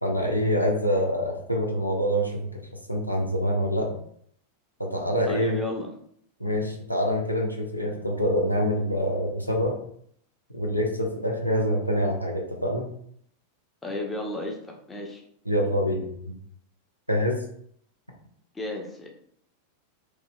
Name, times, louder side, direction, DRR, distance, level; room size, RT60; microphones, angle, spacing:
voice 1, 0.0-2.5 2.9-3.9 4.8-5.6 6.4-9.8 10.5-12.9 15.5-16.1 17.1-17.4, equal, 90° left, 0 dB, 0.5 m, -25 dB
voice 2, 5.3-5.9 13.8-14.6 14.9-15.2 18.5-19.1, left 2 dB, 15° left, 1 dB, 0.6 m, -32 dB
3.0 x 2.7 x 2.2 m, 0.67 s
figure-of-eight pair, 90°, 0 cm